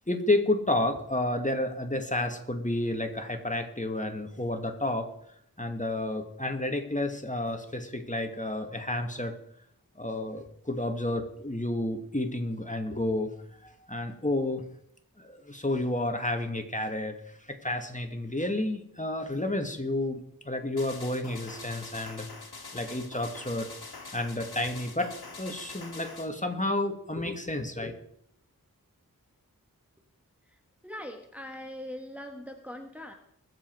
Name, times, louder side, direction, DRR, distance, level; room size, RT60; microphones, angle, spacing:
voice 1, 0.1-5.1 5.6-9.3 10.0-13.3 13.6-14.6 15.2-22.3 22.7-23.7 24.0-25.1 25.4-27.9, left 1 dB, 20° left, 5 dB, 2.0 m, -31 dB
sound 1, 20.8-26.3, left 3 dB, 85° left, 1.6 m, -44 dB
voice 2, 30.8-33.1, left 1 dB, 5° right, 4 dB, 1.4 m, -41 dB
22.0 x 7.6 x 4.7 m, 0.70 s
wide cardioid pair, 40°, 37 cm